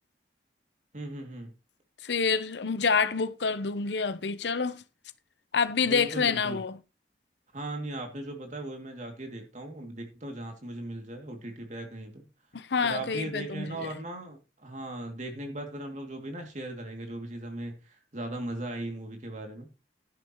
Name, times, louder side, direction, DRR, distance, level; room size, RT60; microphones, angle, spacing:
voice 1, 0.9-1.5 5.8-6.6 7.5-12.2 12.8-19.7, right 1 dB, 40° right, 2.5 m, -38 dB
voice 2, 2.0-4.8 5.5-6.7 12.5-13.9, left 5 dB, 80° left, 0.8 m, -27 dB
11.5 x 10.0 x 3.0 m
head